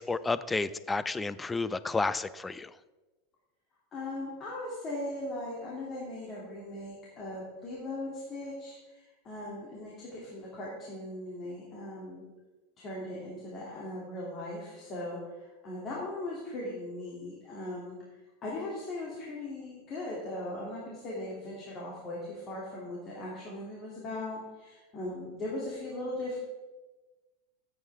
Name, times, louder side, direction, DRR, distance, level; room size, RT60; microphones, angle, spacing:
voice 1, 0.0-2.7, left 3 dB, 15° left, 16 dB, 0.4 m, -31 dB
voice 2, 3.9-12.2 12.8-18.0 18.4-26.4, left 1 dB, 35° left, -5 dB, 2.8 m, -39 dB
15.0 x 8.5 x 3.6 m, 1.2 s
supercardioid pair, 120°, 0 cm